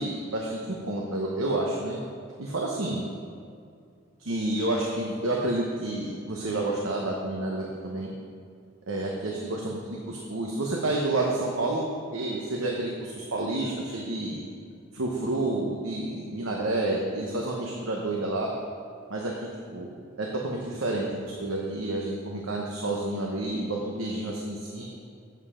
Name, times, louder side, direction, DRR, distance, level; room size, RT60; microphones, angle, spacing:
voice 1, 0.0-2.0 2.4-3.0 4.2-8.1 8.9-14.4 14.9-18.5 19.1-19.9 20.2-24.8, right 2 dB, 80° right, -1 dB, 1.0 m, -29 dB
7.8 x 7.7 x 5.0 m, 2.3 s
head